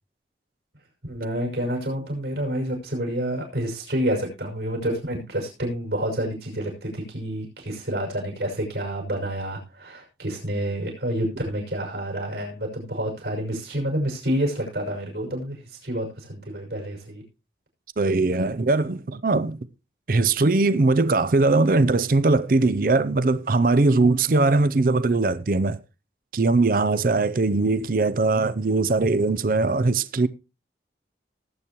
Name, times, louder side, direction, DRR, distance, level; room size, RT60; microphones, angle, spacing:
voice 1, 1.0-17.2, right 1 dB, 75° right, 5.9 m, -28 dB
voice 2, 18.0-19.6 20.1-25.8 26.3-30.3, right 3 dB, 50° right, 0.5 m, -20 dB
19.0 x 8.4 x 3.0 m
head